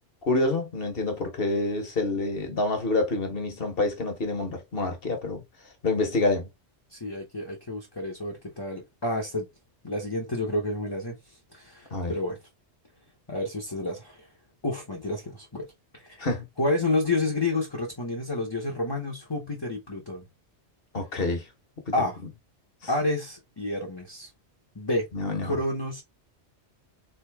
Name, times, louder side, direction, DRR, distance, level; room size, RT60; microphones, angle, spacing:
voice 1, 0.3-5.4 5.8-6.5 11.9-12.1 16.2-16.5 20.9-21.4 21.9-22.1 25.1-25.6, left 2 dB, 55° left, 1.5 m, -27 dB
voice 2, 6.9-9.5 9.8-11.2 11.5-12.4 13.3-14.2 14.6-15.7 15.9-16.3 16.6-20.2 21.9-22.2 22.9-24.3 24.7-25.1 25.4-26.0, left 2 dB, 25° left, 1.0 m, -29 dB
3.8 x 3.6 x 3.5 m
omnidirectional pair, 1.2 m